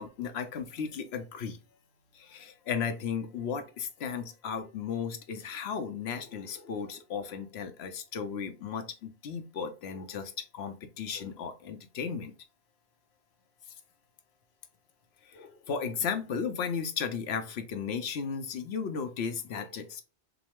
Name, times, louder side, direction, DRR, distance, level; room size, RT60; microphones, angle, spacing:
voice 1, 0.0-1.6 2.1-12.3 15.3-20.0, left 6 dB, 70° left, 0.9 m, -35 dB
5.9 x 2.0 x 3.4 m
omnidirectional pair, 1.2 m